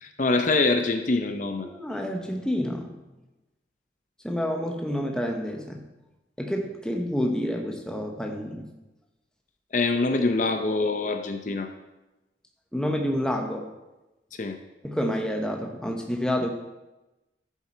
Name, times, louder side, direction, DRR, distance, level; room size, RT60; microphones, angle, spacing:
voice 1, 0.0-1.7 9.7-11.7 14.4-14.6, left 3 dB, 45° left, 6 dB, 0.6 m, -24 dB
voice 2, 1.6-3.0 4.2-5.8 6.4-8.7 12.7-13.7 14.8-16.5, equal, 5° left, 2 dB, 0.9 m, -28 dB
10.5 x 7.4 x 4.5 m, 1.0 s
head